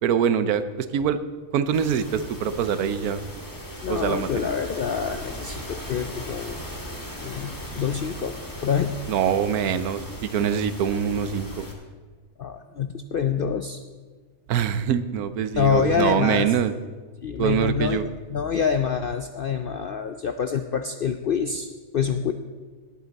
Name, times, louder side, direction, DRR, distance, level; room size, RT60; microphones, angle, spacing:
voice 1, 0.0-1.2 1.5-3.2 3.9-4.3 9.1-11.6 14.5-16.7 17.4-18.0, right 8 dB, 90° right, 12 dB, 1.2 m, -24 dB
sound 1, 1.7-11.7, equal, 15° left, 1.7 m, -38 dB
voice 2, 3.8-6.6 7.2-8.4 8.6-9.0 12.4-13.8 15.5-16.5 17.2-22.3, left 7 dB, 70° left, 8 dB, 0.5 m, -26 dB
18.0 x 8.6 x 4.1 m, 1.4 s
omnidirectional pair, 1.5 m